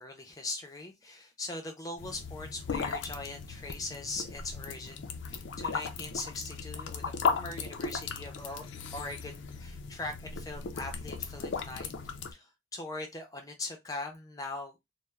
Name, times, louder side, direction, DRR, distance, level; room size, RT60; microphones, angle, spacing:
voice 1, 0.0-8.6 8.9-11.9 12.3-14.7, left 2 dB, 20° left, 0.5 m, -41 dB
sound 1, 2.0-12.3, left 5 dB, 70° left, 0.4 m, -37 dB
2.3 x 2.1 x 3.1 m
head